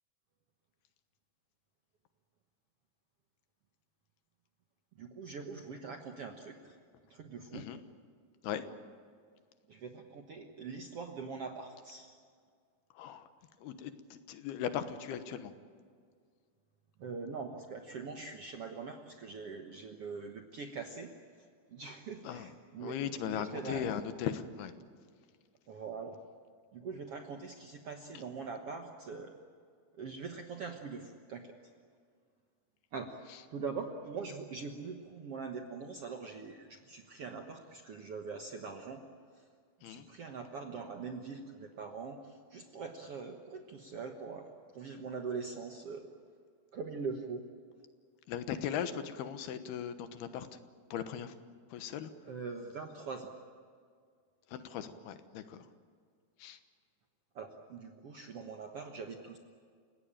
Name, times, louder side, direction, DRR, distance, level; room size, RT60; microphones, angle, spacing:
voice 1, 5.0-6.7 7.1-7.7 9.7-12.1 17.0-21.1 21.7-23.8 25.7-26.2 26.7-29.3 30.0-31.5 32.9-33.2 33.5-39.0 39.9-44.5 44.7-46.1 46.7-47.4 52.2-53.3 57.3-59.4, right 5 dB, 60° right, 4 dB, 1.5 m, -43 dB
voice 2, 12.9-13.3 13.6-15.5 22.2-22.5 22.8-24.7 28.1-28.2 39.8-40.1 48.3-50.6 50.9-51.3 51.7-52.1 54.5-55.7 56.4-56.6, left 9 dB, 85° left, 10 dB, 3.2 m, -38 dB
29.5 x 17.5 x 9.0 m, 2.1 s
omnidirectional pair, 4.5 m